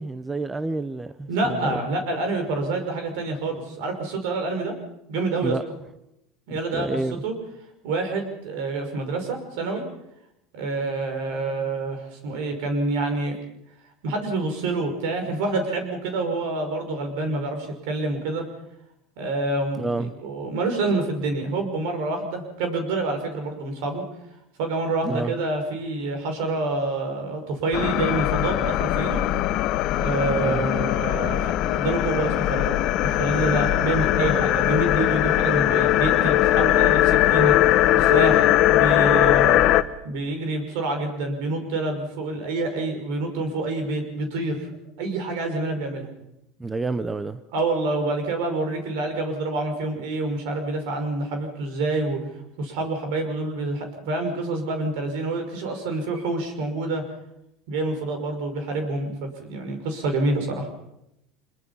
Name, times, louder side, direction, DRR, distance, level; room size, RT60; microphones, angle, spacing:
voice 1, 0.0-1.8 5.4-5.7 6.5-7.2 19.8-20.2 25.0-25.3 30.4-30.7 46.6-47.4, right 3 dB, 15° right, 0.9 m, -29 dB
voice 2, 1.3-4.7 5.1-5.5 6.5-6.9 7.2-7.3 7.8-9.8 10.5-13.4 14.0-18.4 19.2-24.0 24.6-29.2 30.0-37.5 37.9-39.6 40.0-44.7 45.0-46.1 47.5-52.2 52.6-57.0 57.7-60.7, right 2 dB, 75° right, 5.8 m, -27 dB
sound 1, 27.7-39.8, left 14 dB, 55° left, 0.9 m, -20 dB
25.5 x 22.0 x 5.7 m
supercardioid pair, 115°, 0 cm